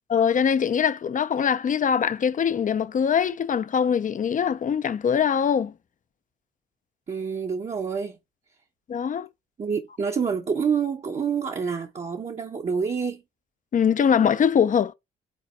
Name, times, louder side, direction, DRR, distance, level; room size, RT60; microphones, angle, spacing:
voice 1, 0.1-5.7 8.9-9.3 13.7-14.9, left 7 dB, 40° left, 0.6 m, -22 dB
voice 2, 7.1-8.2 9.6-13.2, right 6 dB, 35° right, 1.0 m, -27 dB
5.4 x 3.9 x 4.5 m
cardioid pair, 90°, 20 cm